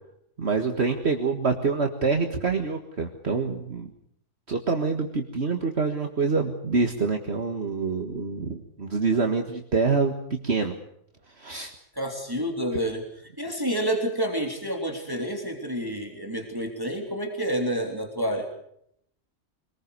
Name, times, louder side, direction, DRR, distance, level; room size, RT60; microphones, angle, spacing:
voice 1, 0.4-3.9 4.5-10.8 11.4-11.7 12.7-12.8, right 4 dB, 55° right, 4 dB, 2.0 m, -26 dB
voice 2, 11.9-18.5, equal, 15° right, 2 dB, 3.4 m, -29 dB
25.5 x 20.5 x 6.8 m, 0.71 s
omnidirectional pair, 1.4 m